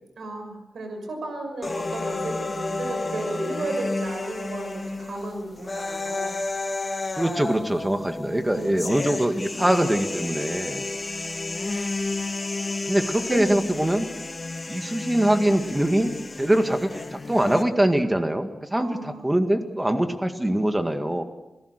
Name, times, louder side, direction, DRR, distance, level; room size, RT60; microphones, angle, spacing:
voice 1, 0.2-6.4 8.3-8.9 13.0-13.4 18.8-19.3, right 2 dB, 80° right, 4 dB, 6.0 m, -34 dB
sound 1, 1.6-17.6, left 3 dB, 30° left, 1.5 m, -32 dB
voice 2, 7.2-10.8 12.9-14.1 14.7-16.9 17.3-21.2, right 1 dB, 15° right, 7 dB, 2.0 m, -23 dB
27.5 x 18.0 x 6.7 m, 1.0 s
wide cardioid pair, 110°, 0 cm